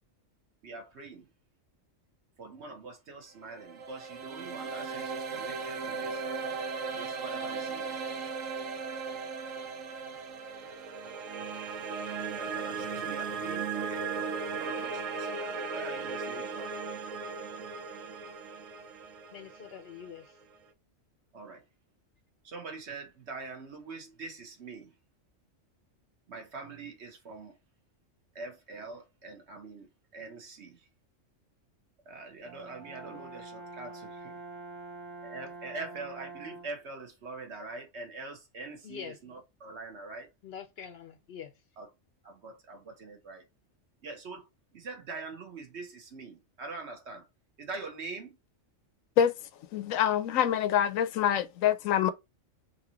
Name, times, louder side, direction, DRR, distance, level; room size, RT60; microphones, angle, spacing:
voice 1, 0.6-1.3 2.4-6.2 7.0-8.0 12.4-14.1 14.5-16.9 21.3-21.6 22.4-24.9 26.3-27.6 28.3-30.9 32.0-34.4 35.2-40.3 41.8-41.9 42.2-43.4 44.0-44.5 44.7-47.3 47.6-48.4, right 3 dB, 60° right, 1.3 m, -44 dB
sound 1, 3.4-20.5, right 5 dB, 80° right, 1.1 m, -37 dB
voice 2, 19.3-20.4 33.1-33.2 38.8-39.2 40.4-41.5, left 8 dB, 65° left, 0.7 m, -44 dB
Brass instrument, 32.4-36.9, right 3 dB, 15° right, 0.4 m, -45 dB
voice 3, 49.7-52.1, left 9 dB, 85° left, 1.0 m, -25 dB
3.9 x 2.8 x 2.8 m
omnidirectional pair, 1.3 m